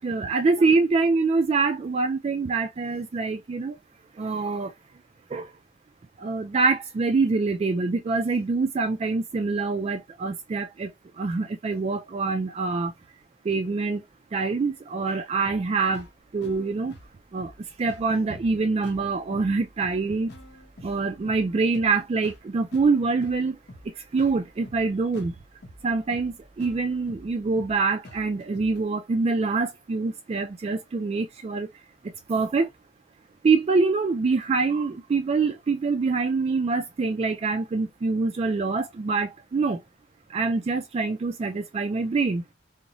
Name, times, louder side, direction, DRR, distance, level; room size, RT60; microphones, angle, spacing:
voice 1, 0.0-3.8 4.1-4.7 5.3-5.5 6.2-12.9 13.4-14.0 14.3-16.1 16.3-16.9 17.3-20.3 20.8-23.6 24.0-25.3 25.8-31.7 32.0-32.7 33.4-39.8 40.3-42.4, right 4 dB, 35° right, 0.3 m, -25 dB
sound 1, 15.4-28.8, equal, 65° left, 0.8 m, -48 dB
2.6 x 2.1 x 2.9 m
head